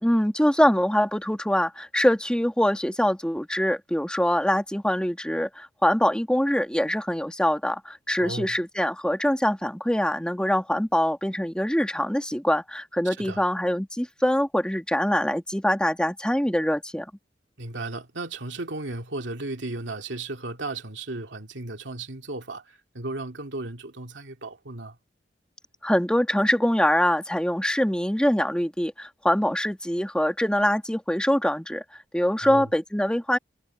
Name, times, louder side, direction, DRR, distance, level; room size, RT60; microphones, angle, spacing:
voice 1, 0.0-17.1 25.8-31.8 32.1-33.4, equal, 5° left, 2.0 m, -24 dB
voice 2, 8.2-8.5 13.0-13.4 17.6-25.0 32.4-32.7, right 2 dB, 90° right, 2.4 m, -35 dB
head